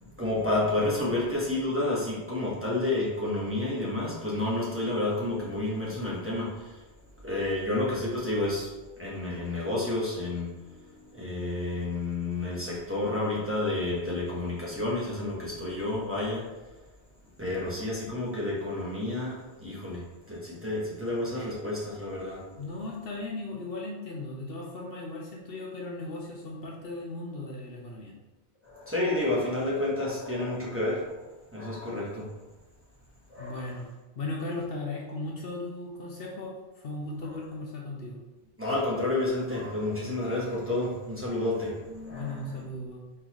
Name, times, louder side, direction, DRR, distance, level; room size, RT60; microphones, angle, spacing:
voice 1, 0.0-6.8 7.2-8.7 9.0-16.5 17.4-20.0 20.3-22.4 28.6-31.2 31.5-32.3 33.3-33.6 38.6-42.6, left 2 dB, 10° right, -7 dB, 1.0 m, -30 dB
voice 2, 22.6-28.1 33.4-33.9 34.2-38.2 42.1-43.0, left 2 dB, 60° left, -2 dB, 0.8 m, -37 dB
4.3 x 3.9 x 3.0 m, 1.1 s
omnidirectional pair, 1.2 m